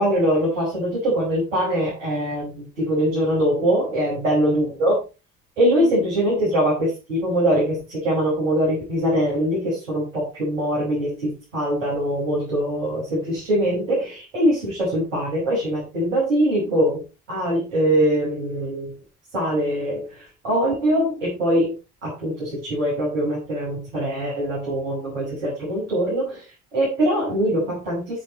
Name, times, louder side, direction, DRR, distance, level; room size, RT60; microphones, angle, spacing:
voice 1, 0.0-5.0 5.6-19.0 19.3-21.7 22.0-28.2, equal, 85° right, -7 dB, 6.0 m, -22 dB
10.5 x 7.3 x 4.2 m, 0.31 s
hypercardioid pair, 55°, 37 cm